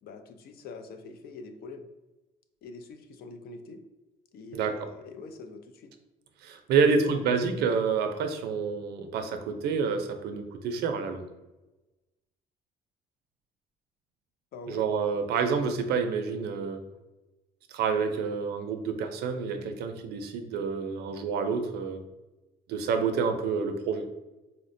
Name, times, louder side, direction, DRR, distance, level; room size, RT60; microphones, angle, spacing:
voice 1, 0.0-1.9 2.6-3.8 4.3-5.9 6.7-7.2 14.5-14.8, left 4 dB, 65° left, 7 dB, 0.4 m, -43 dB
voice 2, 6.4-11.3 14.7-16.8 17.7-22.0 22.7-24.0, right 5 dB, 75° right, 7 dB, 0.5 m, -28 dB
4.0 x 2.1 x 2.6 m, 1.1 s
cardioid pair, 110°, 17 cm